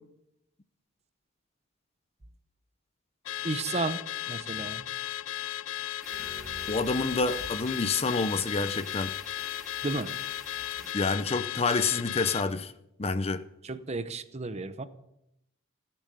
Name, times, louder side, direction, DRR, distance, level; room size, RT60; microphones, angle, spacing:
Car / Alarm, 3.3-12.5, left 13 dB, 70° left, 0.5 m, -36 dB
voice 1, 3.4-4.0 4.3-4.9 9.8-10.1 13.6-14.9, right 3 dB, 30° right, 0.8 m, -33 dB
sound 1, 6.0-10.9, equal, ahead, 2.3 m, -49 dB
sound 2, 6.1-8.0, right 1 dB, 65° right, 1.9 m, -47 dB
voice 2, 6.7-9.1 10.9-12.7 13.0-13.4, left 4 dB, 30° left, 0.6 m, -28 dB
17.0 x 10.0 x 6.9 m
head